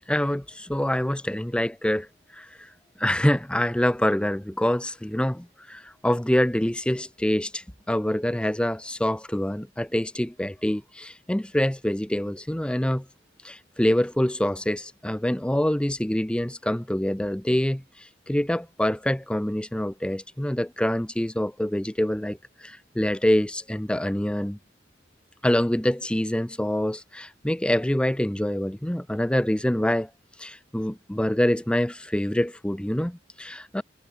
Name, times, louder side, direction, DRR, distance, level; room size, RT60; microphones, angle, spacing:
voice 1, 0.1-2.1 2.3-2.7 3.0-13.1 13.4-24.6 25.4-30.1 30.4-33.8, left 1 dB, 5° left, 0.6 m, -25 dB
head